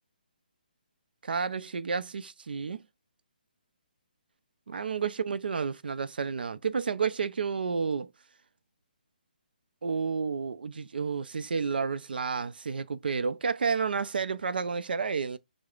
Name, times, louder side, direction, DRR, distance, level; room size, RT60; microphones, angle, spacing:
voice 1, 1.2-2.8 4.7-8.1 9.8-15.4, right 5 dB, 75° right, 0.4 m, -31 dB
4.7 x 2.0 x 2.3 m
hypercardioid pair, 165°, 5 cm